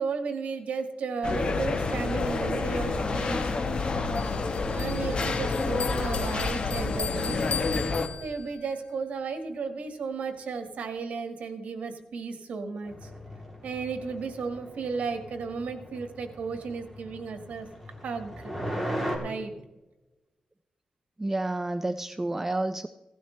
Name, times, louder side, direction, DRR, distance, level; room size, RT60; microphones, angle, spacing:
voice 1, 0.0-3.5 4.7-7.4 8.2-13.1 13.6-17.7 18.0-18.5 19.2-19.5, right 5 dB, 85° right, 6 dB, 1.7 m, -34 dB
sound 1, 1.2-8.1, left 3 dB, 45° left, 1.1 m, -28 dB
Bell, 4.2-8.7, left 7 dB, 70° left, 0.7 m, -38 dB
sound 2, 12.8-19.2, equal, ahead, 3.1 m, -38 dB
voice 2, 21.2-22.9, right 2 dB, 15° right, 10 dB, 0.4 m, -29 dB
16.5 x 12.5 x 3.2 m, 1.1 s
wide cardioid pair, 135°, 2 cm